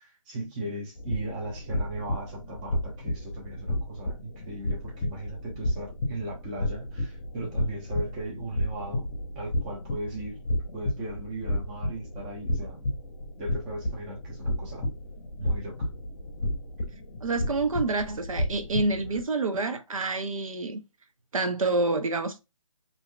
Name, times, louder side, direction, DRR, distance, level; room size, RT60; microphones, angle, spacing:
voice 1, 0.0-10.4 10.7-12.9 13.4-14.9 15.4-15.9, right 1 dB, 15° right, 0.7 m, -37 dB
sound 1, 1.0-19.2, left 1 dB, 35° left, 0.8 m, -32 dB
voice 2, 17.2-20.8 21.3-22.4, right 3 dB, 80° right, 0.7 m, -28 dB
3.0 x 2.7 x 2.3 m
hypercardioid pair, 160°, 17 cm